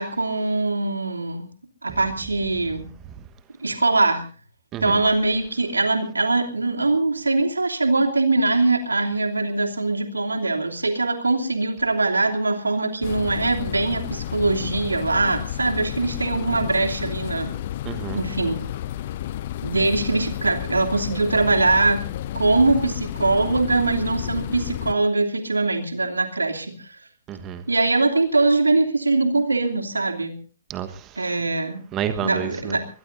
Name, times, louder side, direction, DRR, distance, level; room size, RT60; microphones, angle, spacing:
voice 1, 0.0-1.5 1.8-2.9 3.6-4.3 4.8-17.5 18.1-18.6 19.6-22.0 22.3-26.9 27.7-30.4 31.2-31.9 32.2-32.9, right 3 dB, 80° right, 3.0 m, -22 dB
sound 1, 13.0-24.9, left 12 dB, 40° left, 0.8 m, -31 dB
voice 2, 17.8-18.2 27.3-27.6 30.7-31.2 31.9-32.8, right 9 dB, 20° right, 1.3 m, -30 dB
22.5 x 21.0 x 2.7 m
figure-of-eight pair, 125°, 0 cm